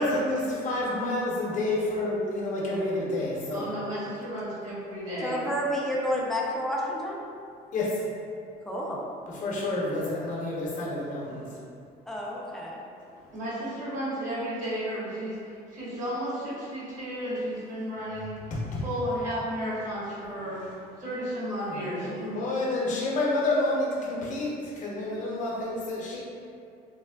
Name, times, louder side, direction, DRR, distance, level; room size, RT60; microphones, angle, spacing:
voice 1, 0.0-3.6 7.7-8.0 9.3-11.5 18.5-18.8 20.4-20.7 21.7-26.2, left 2 dB, 50° left, -5 dB, 0.7 m, -29 dB
voice 2, 3.5-5.4 13.3-18.5 18.8-20.6 21.0-22.4, equal, 50° right, -10 dB, 1.3 m, -33 dB
voice 3, 5.2-7.2 8.7-9.0 12.1-12.8, equal, ahead, -4 dB, 0.4 m, -30 dB
3.3 x 2.0 x 2.2 m, 2.5 s
cardioid pair, 110°, 17 cm